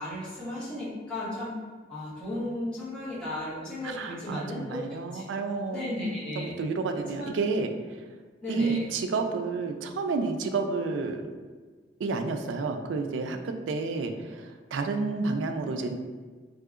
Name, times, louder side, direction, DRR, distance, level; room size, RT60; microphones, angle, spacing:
voice 1, 0.0-1.5 1.9-4.8 5.1-5.3 5.7-6.6 6.9-7.3 8.4-8.9, left 1 dB, 5° left, -10 dB, 1.0 m, -35 dB
voice 2, 3.8-6.0 6.4-7.7 8.5-11.2 12.0-16.0, right 4 dB, 85° right, 6 dB, 0.3 m, -30 dB
3.7 x 2.7 x 2.4 m, 1.4 s
head